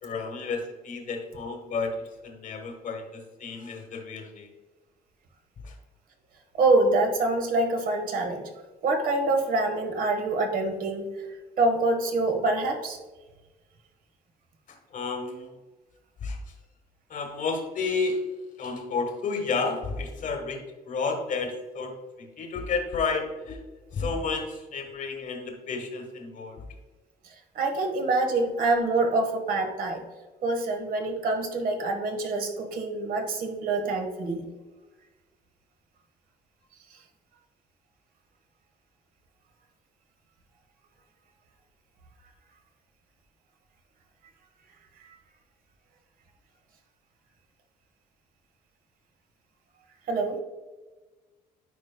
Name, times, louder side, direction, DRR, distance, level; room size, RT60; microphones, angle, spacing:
voice 1, 0.0-1.9 2.2-4.5 5.6-5.7 14.7-15.5 16.2-16.4 17.1-18.2 18.6-23.6 23.9-26.7, left 4 dB, 50° left, 4 dB, 1.3 m, -31 dB
voice 2, 6.6-8.5 8.8-11.1 11.6-13.0 27.5-30.0 30.4-34.4 50.1-50.4, right 2 dB, 55° right, 4 dB, 1.4 m, -25 dB
9.8 x 4.7 x 2.2 m, 1.2 s
cardioid pair, 110°, 17 cm